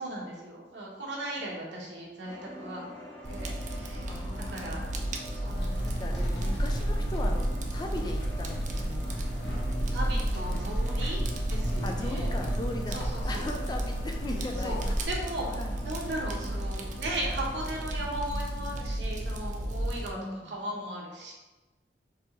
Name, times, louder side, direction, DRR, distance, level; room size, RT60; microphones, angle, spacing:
voice 1, 0.0-4.2 4.5-4.8 5.3-5.7 9.9-11.2 11.5-12.3 12.9-13.5 14.6-14.8 15.1-15.5 15.8-21.3, right 1 dB, 90° right, -3 dB, 1.2 m, -37 dB
sound 1, 2.2-17.9, equal, 5° left, 1.1 m, -46 dB
Fire, 3.2-20.1, right 1 dB, 45° right, 0.5 m, -34 dB
voice 2, 4.1-4.9 5.8-9.1 11.8-13.0 13.2-14.8 15.5-15.7 20.1-20.5, left 2 dB, 25° left, 2 dB, 0.4 m, -38 dB
sound 2, 5.4-15.1, right 1 dB, 65° left, 0.9 m, -32 dB
4.7 x 2.9 x 3.8 m, 1.1 s
head